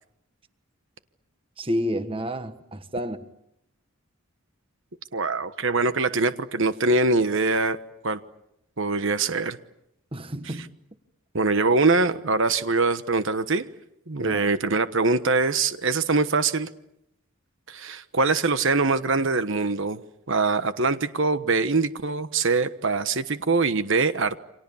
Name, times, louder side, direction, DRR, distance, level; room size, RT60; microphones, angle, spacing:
voice 1, 1.6-3.2 10.1-10.7 14.2-14.4, equal, 25° right, 1.4 m, -30 dB
voice 2, 5.1-7.8 8.0-8.2 8.8-9.6 11.3-13.6 14.1-16.7 17.7-20.0 20.3-24.4, right 3 dB, 55° right, 1.2 m, -23 dB
29.5 x 26.5 x 7.2 m
head